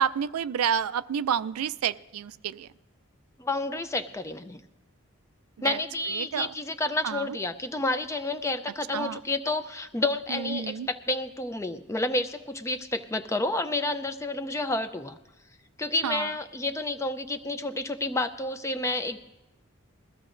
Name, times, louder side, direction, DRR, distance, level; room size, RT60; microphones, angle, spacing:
voice 1, 0.0-2.7 5.6-5.8 6.1-6.5 7.0-7.3 8.9-9.2 10.3-10.9 16.0-16.3, right 8 dB, 90° right, 15 dB, 0.4 m, -29 dB
voice 2, 3.4-4.6 5.6-15.2 15.8-19.2, left 2 dB, 15° left, 9 dB, 0.4 m, -30 dB
21.0 x 15.0 x 2.5 m, 1.0 s
head